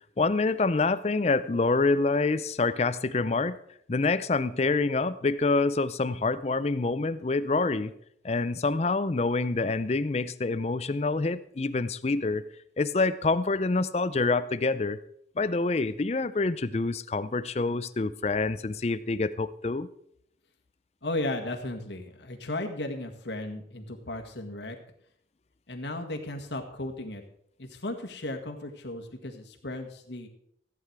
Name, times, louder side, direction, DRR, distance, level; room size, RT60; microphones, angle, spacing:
voice 1, 0.2-3.6 3.9-7.9 8.2-12.4 12.8-15.0 15.4-19.9, left 3 dB, 35° left, 15 dB, 0.4 m, -26 dB
voice 2, 21.0-24.8 25.7-27.2 27.6-30.3, left 1 dB, 80° left, 4 dB, 1.7 m, -35 dB
14.5 x 8.7 x 4.7 m, 0.71 s
head